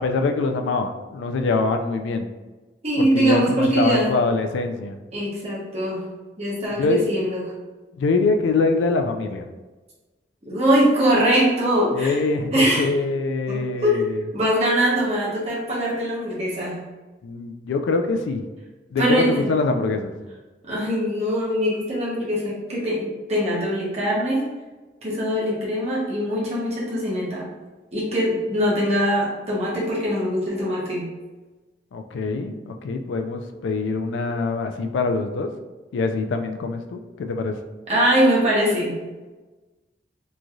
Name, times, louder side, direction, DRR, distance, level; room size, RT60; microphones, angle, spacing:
voice 1, 0.0-2.3 3.0-5.0 6.8-7.1 7.9-9.5 11.9-14.2 17.2-18.4 18.9-20.2 31.9-35.5 35.9-37.6, left 3 dB, 90° left, 5 dB, 0.3 m, -24 dB
voice 2, 2.8-4.1 5.1-6.0 6.4-7.4 10.5-12.1 12.5-12.8 13.5-14.1 14.3-16.8 19.0-19.3 20.7-24.4 25.0-27.5 27.9-31.1 37.9-39.0, equal, 35° right, -6 dB, 0.8 m, -22 dB
3.0 x 2.6 x 2.3 m, 1.2 s
head